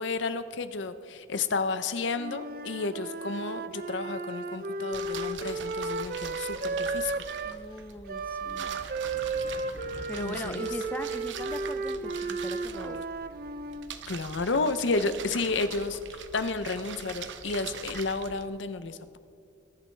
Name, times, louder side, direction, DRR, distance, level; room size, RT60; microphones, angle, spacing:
voice 1, 0.0-7.1 10.2-10.7 14.1-19.2, left 3 dB, 75° left, 12 dB, 0.6 m, -31 dB
Wind instrument woodwind instrument, 2.1-7.6 8.1-13.9, right 3 dB, 50° right, 0.5 m, -34 dB
sound 1, 4.9-18.5, right 6 dB, 75° right, 0.7 m, -43 dB
voice 2, 7.4-8.8 10.1-13.0, left 1 dB, 10° left, 8 dB, 0.3 m, -40 dB
sound 2, 8.7-12.2, equal, 10° right, 2.6 m, -49 dB
21.5 x 11.0 x 3.3 m, 2.4 s
head